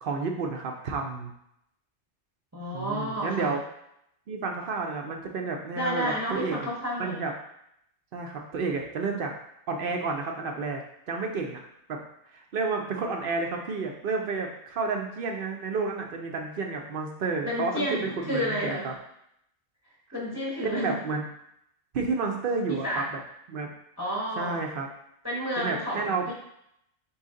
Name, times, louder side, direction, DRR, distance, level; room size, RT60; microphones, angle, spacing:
voice 1, 0.0-1.3 2.7-3.6 4.3-6.7 7.0-7.3 8.1-9.3 9.7-10.8 11.1-11.6 11.9-12.0 12.3-18.9 20.6-21.2 21.9-23.0 23.5-23.7 24.4-24.9 25.6-26.3, right 4 dB, 55° right, 2 dB, 0.7 m, -30 dB
voice 2, 2.5-3.6 5.7-7.3 17.4-18.8 20.1-21.0 22.7-23.0 24.0-24.6 25.2-26.3, equal, 15° right, -4 dB, 0.8 m, -31 dB
4.1 x 3.1 x 3.7 m, 0.76 s
omnidirectional pair, 1.3 m